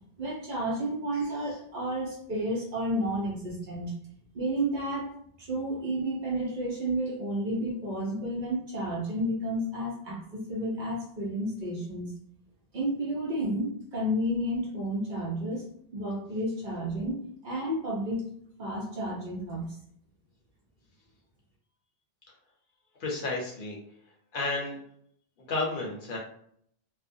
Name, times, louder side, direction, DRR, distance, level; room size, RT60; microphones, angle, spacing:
voice 1, 0.2-3.9 4.3-5.1 5.4-12.1 12.7-15.6 15.9-18.3 18.6-19.8, right 1 dB, 55° right, -4 dB, 0.9 m, -31 dB
voice 2, 23.0-23.8 24.3-24.8 25.4-26.2, left 3 dB, 60° left, -1 dB, 0.7 m, -31 dB
2.4 x 2.1 x 2.6 m, 0.67 s
omnidirectional pair, 1.0 m